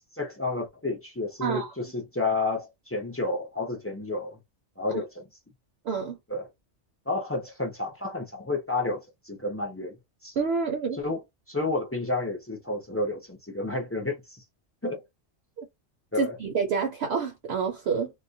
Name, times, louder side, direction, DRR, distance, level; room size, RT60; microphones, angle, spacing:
voice 1, 0.1-4.4 4.8-5.3 6.3-6.5 7.1-10.0 10.2-10.3 11.0-11.2 11.5-14.4 14.8-15.0 16.1-16.4, left 2 dB, 25° left, 0.3 m, -30 dB
voice 2, 1.4-1.7 4.9-5.0 5.8-6.2 10.4-11.0 15.6-15.7 16.2-18.1, right 5 dB, 65° right, 0.8 m, -28 dB
2.3 x 2.1 x 2.5 m
omnidirectional pair, 1.2 m